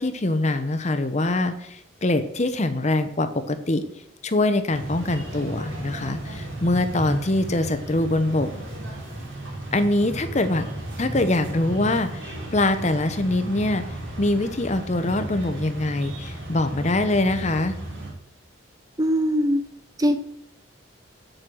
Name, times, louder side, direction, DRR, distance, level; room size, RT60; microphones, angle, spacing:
voice 1, 0.0-3.8 4.2-8.5 9.7-10.7 11.0-13.8 14.2-17.8, left 2 dB, 35° left, 10 dB, 0.8 m, -23 dB
sound 1, 4.7-18.1, right 1 dB, 75° right, 4.0 m, -35 dB
voice 2, 19.0-19.6 20.0-20.2, equal, 20° right, 9 dB, 0.6 m, -21 dB
7.9 x 7.7 x 6.1 m, 0.74 s
head